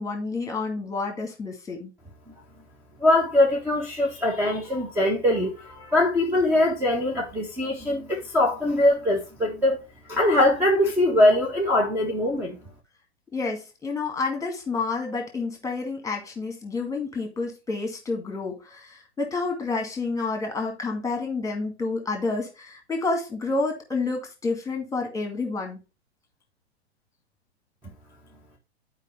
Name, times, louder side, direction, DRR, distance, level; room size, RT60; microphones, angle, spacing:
voice 1, 0.0-1.9 13.3-25.8, left 3 dB, 10° left, 2.1 m, -29 dB
voice 2, 3.0-9.8 10.1-12.6, left 1 dB, 5° right, 1.5 m, -22 dB
11.0 x 4.9 x 3.2 m
figure-of-eight pair, 100°, 32 cm